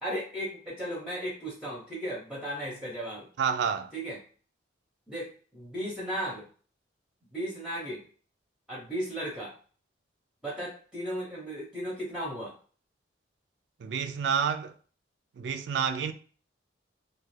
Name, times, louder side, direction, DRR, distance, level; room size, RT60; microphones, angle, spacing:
voice 1, 0.0-3.3 3.9-4.2 5.1-6.5 7.3-8.0 8.7-9.5 10.4-12.5, equal, 5° right, 0.6 m, -35 dB
voice 2, 3.4-3.9 13.8-14.7 15.4-16.1, right 6 dB, 65° right, 0.3 m, -29 dB
2.7 x 2.4 x 3.2 m
head